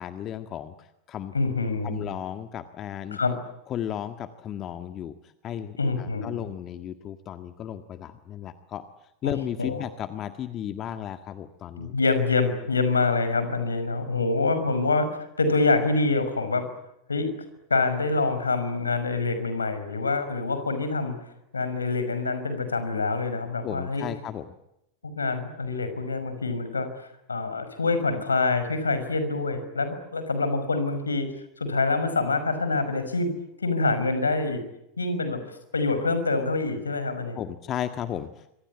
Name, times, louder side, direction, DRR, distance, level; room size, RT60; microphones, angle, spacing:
voice 1, 0.0-1.3 1.8-3.2 3.7-8.8 9.2-11.9 23.6-24.4 37.3-38.5, left 10 dB, 30° left, 9 dB, 1.6 m, -34 dB
voice 2, 1.3-2.0 3.1-3.3 5.8-6.4 9.2-9.3 9.6-9.8 11.8-16.6 17.1-17.3 17.7-21.2 21.5-24.1 25.0-31.3 31.6-33.3 33.6-34.6 35.0-35.4 35.7-37.4, left 3 dB, 75° left, 11 dB, 5.8 m, -26 dB
26.5 x 26.0 x 8.5 m, 0.84 s
figure-of-eight pair, 90°, 0 cm